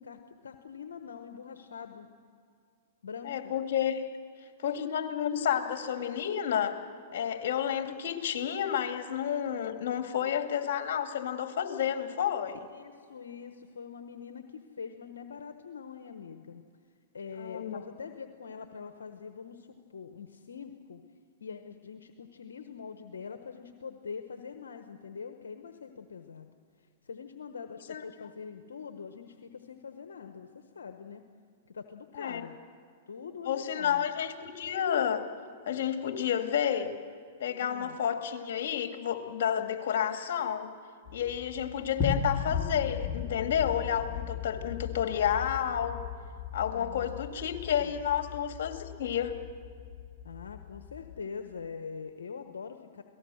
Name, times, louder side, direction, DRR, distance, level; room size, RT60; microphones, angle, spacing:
voice 1, 0.0-2.1 3.0-3.5 12.7-16.6 17.1-21.0 21.4-26.5 27.0-31.2 31.6-32.6 33.1-34.0 37.6-38.0 46.7-47.1 47.8-48.0 50.2-53.0, left 6 dB, 85° left, 7 dB, 1.1 m, -44 dB
voice 2, 3.2-4.0 4.6-6.8 7.1-12.6 17.4-17.8 27.9-28.0 32.2-32.5 33.5-35.2 35.7-36.9 37.4-40.7 41.1-46.0 46.5-49.4, left 9 dB, 65° left, 6 dB, 2.2 m, -30 dB
sound 1, 41.1-51.2, left 7 dB, 30° left, 3.1 m, -37 dB
28.0 x 18.5 x 6.4 m, 2.2 s
hypercardioid pair, 120°, 0 cm